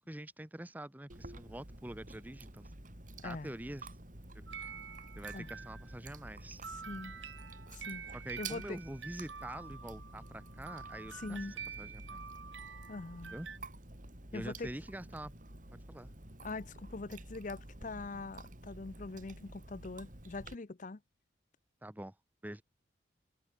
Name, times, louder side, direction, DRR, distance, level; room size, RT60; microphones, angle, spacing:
voice 1, 0.1-2.7 3.2-3.9 4.3-4.4 5.2-6.6 8.1-11.4 11.8-12.2 13.3-13.5 14.3-15.3 15.9-16.1 21.8-22.1 22.4-22.6, right 1 dB, 10° right, 0.7 m, -45 dB
Chewing mastication, 1.1-20.5, right 2 dB, 45° right, 3.9 m, -50 dB
sound 1, 4.5-6.1 6.6-13.6, right 6 dB, 90° right, 3.3 m, -47 dB
voice 2, 6.7-7.2 7.7-8.1 8.4-8.8 11.1-11.5 12.9-13.3 14.3-14.7 16.4-21.0, left 3 dB, 45° left, 0.7 m, -43 dB
head